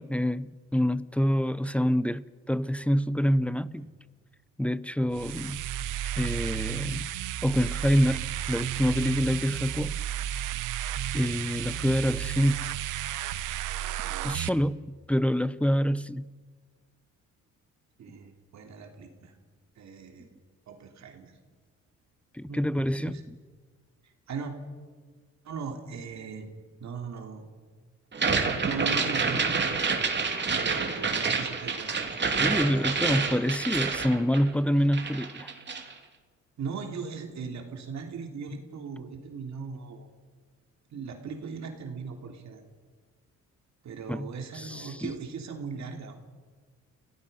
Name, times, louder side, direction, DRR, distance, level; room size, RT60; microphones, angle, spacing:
voice 1, 0.0-3.9 4.6-5.6 6.2-7.1 7.4-9.9 11.1-12.7 14.2-16.3 22.3-23.2 32.4-35.5 44.1-45.1, equal, 5° left, 17 dB, 0.6 m, -27 dB
sound 1, 5.1-14.5, right 12 dB, 90° right, 1.1 m, -33 dB
voice 2, 18.0-19.3 19.8-20.3 20.7-21.3 22.5-23.2 24.0-24.5 25.4-26.5 26.8-27.5 28.6-29.7 30.5-32.0 33.0-33.6 36.6-40.1 40.9-42.6 43.8-46.2, right 5 dB, 65° right, 3 dB, 3.1 m, -39 dB
sound 2, 28.1-34.7 34.9-35.9, right 4 dB, 35° right, 2.8 m, -28 dB
30.0 x 17.5 x 5.5 m, 1.5 s
cardioid pair, 90°, 30 cm